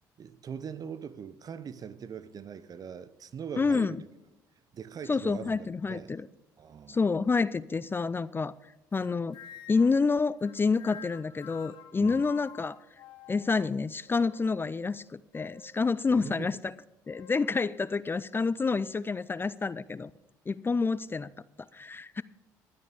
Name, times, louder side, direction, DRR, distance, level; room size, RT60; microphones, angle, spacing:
voice 1, 0.2-4.0 4.7-6.1 6.6-7.0 12.0-12.3 16.1-16.6, right 7 dB, 45° right, 0.8 m, -41 dB
voice 2, 3.6-4.0 5.1-6.3 6.9-8.5 8.9-9.4 9.7-12.8 13.3-16.7 17.1-20.1 20.5-21.3 21.7-22.2, left 4 dB, 25° left, 0.4 m, -28 dB
sound 1, 8.9-10.0 10.4-13.6 14.1-14.7 15.3-15.7 16.2-16.4 17.1-17.4, left 10 dB, 70° left, 1.3 m, -49 dB
12.0 x 9.5 x 5.3 m
hypercardioid pair, 60°, 9 cm